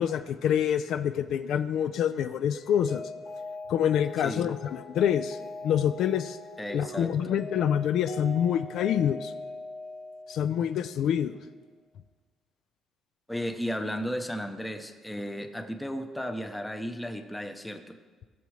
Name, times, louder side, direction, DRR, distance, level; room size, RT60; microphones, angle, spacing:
voice 1, 0.0-3.0 3.7-5.4 5.6-6.4 6.7-9.3 10.3-11.4, left 9 dB, 70° left, 11 dB, 0.4 m, -26 dB
Mallet percussion, 2.5-10.7, left 2 dB, 85° left, 1.6 m, -41 dB
voice 2, 6.6-7.1 13.3-18.0, equal, 5° left, 7 dB, 0.7 m, -34 dB
16.5 x 7.0 x 3.2 m, 1.4 s
cardioid pair, 130°, 0 cm